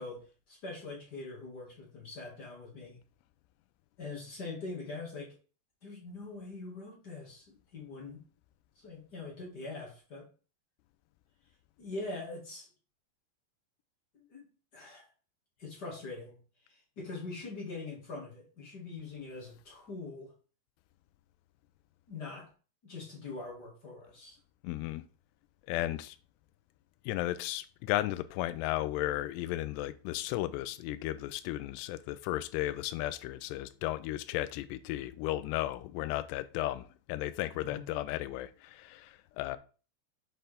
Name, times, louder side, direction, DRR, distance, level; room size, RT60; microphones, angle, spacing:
voice 1, 0.0-3.0 4.0-5.4 5.8-8.2 8.7-10.3 11.8-12.7 14.1-14.4 14.7-15.1 15.6-16.4 16.6-20.3 22.1-22.5 22.8-24.4 37.6-37.8, left 3 dB, 45° left, 1.4 m, -43 dB
voice 2, 24.6-25.0 25.7-26.2 27.1-39.6, left 15 dB, 85° left, 2.6 m, -34 dB
7.9 x 4.4 x 3.4 m
omnidirectional pair, 4.8 m